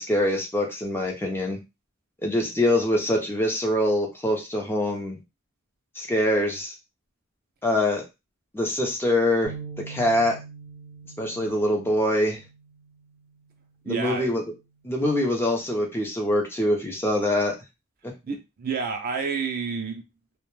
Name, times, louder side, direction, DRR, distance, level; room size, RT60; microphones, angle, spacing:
voice 1, 0.0-1.6 2.2-5.2 6.0-6.7 7.6-8.0 8.5-9.5 9.9-10.4 11.2-12.4 13.9-14.4 14.8-17.5, left 1 dB, 10° left, 0 dB, 0.5 m, -24 dB
sound 1, 9.4-13.7 14.2-14.4 15.2-15.7, right 5 dB, 80° left, 0.9 m, -44 dB
voice 2, 13.8-14.3 18.2-20.0, right 5 dB, 40° right, 5 dB, 0.4 m, -29 dB
2.1 x 2.1 x 3.0 m, 0.25 s
head